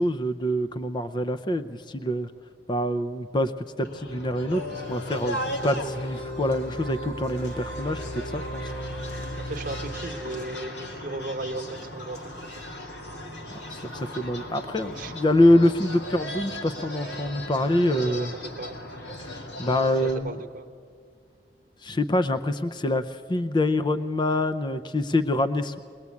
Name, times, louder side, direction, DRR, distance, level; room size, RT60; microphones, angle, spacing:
voice 1, 0.0-2.3 2.7-3.5 3.8-4.6 4.9-5.4 5.6-8.7 13.7-18.3 19.2-20.4 21.8-25.8, left 1 dB, 25° left, 11 dB, 0.6 m, -25 dB
sound 1, 3.8-20.1, left 1 dB, 80° left, 2.3 m, -38 dB
sound 2, 4.5-10.6, equal, 55° left, 2.2 m, -36 dB
voice 2, 9.4-12.2 12.6-12.7 15.0-15.1 17.9-18.8 20.0-20.6, right 2 dB, 50° right, 6 dB, 1.1 m, -36 dB
22.0 x 20.5 x 8.4 m, 2.2 s
head